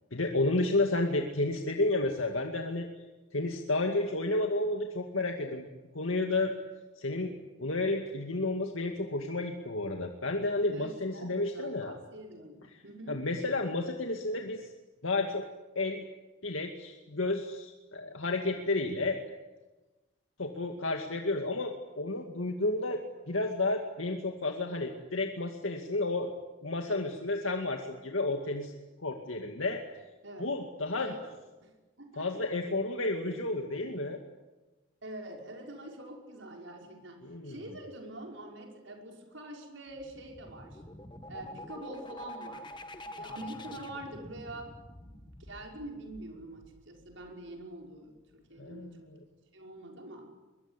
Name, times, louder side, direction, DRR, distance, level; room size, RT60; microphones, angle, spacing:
voice 1, 0.1-2.9 3.3-5.6 5.9-6.5 7.0-7.3 7.6-11.9 13.1-14.7 15.0-15.4 15.8-16.0 16.4-19.2 20.4-26.3 26.6-28.7 29.0-29.8 30.4-31.1 32.2-34.2 37.2-37.5 48.6-49.2, left 2 dB, 90° left, 3 dB, 2.3 m, -31 dB
voice 2, 10.7-13.3 30.2-30.5 31.0-31.3 31.6-32.4 35.0-40.8 41.3-42.8 43.2-44.7 45.0-49.1 49.5-50.3, right 1 dB, 70° right, 1 dB, 5.6 m, -45 dB
sound 1, 39.9-47.5, left 1 dB, 25° left, 1.5 m, -46 dB
23.0 x 22.5 x 10.0 m, 1.2 s
head